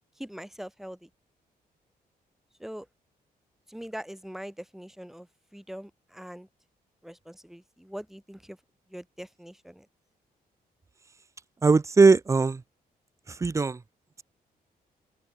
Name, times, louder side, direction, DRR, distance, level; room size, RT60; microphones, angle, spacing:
voice 1, 0.2-1.1 2.6-2.9 3.7-6.5 7.0-8.6 8.9-9.9, equal, ahead, 3.6 m, -42 dB
voice 2, 11.6-12.6 13.4-13.8, right 4 dB, 20° right, 0.8 m, -19 dB
open air
wide cardioid pair, 160°, 16 cm